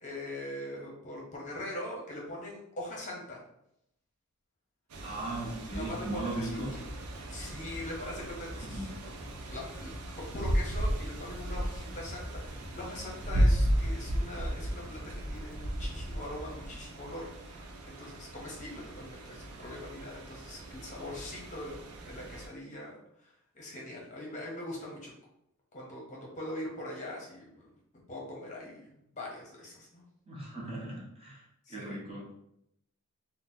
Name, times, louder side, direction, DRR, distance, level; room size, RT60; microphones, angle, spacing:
voice 1, 0.0-3.4 5.7-6.8 7.3-8.9 9.5-15.0 15.3-25.1 25.7-27.7 28.1-28.9 29.1-30.0 31.7-32.0, left 1 dB, 35° left, -2 dB, 0.7 m, -42 dB
sound 1, 4.9-22.5, equal, 75° right, 0.5 m, -35 dB
voice 2, 5.0-6.7 8.6-8.9 30.3-32.3, right 2 dB, 25° right, -5 dB, 0.8 m, -38 dB
sound 2, 5.7-17.9 18.2-18.3, left 1 dB, 10° left, 1.0 m, -47 dB
3.9 x 2.0 x 2.6 m, 0.77 s
head